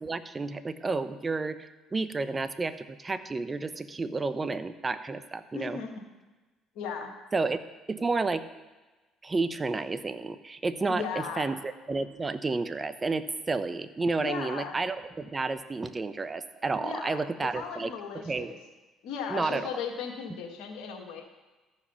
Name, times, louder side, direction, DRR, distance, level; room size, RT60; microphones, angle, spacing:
voice 1, 0.0-5.8 7.3-7.6 7.9-8.4 9.2-18.5 19.3-19.8, right 3 dB, 25° right, 11 dB, 0.7 m, -31 dB
voice 2, 5.5-5.9 6.8-7.1 10.8-11.6 14.2-14.8 16.8-18.6 19.0-21.2, left 6 dB, 75° left, 2 dB, 1.7 m, -37 dB
14.0 x 4.9 x 5.6 m, 1.2 s
supercardioid pair, 70°, 0 cm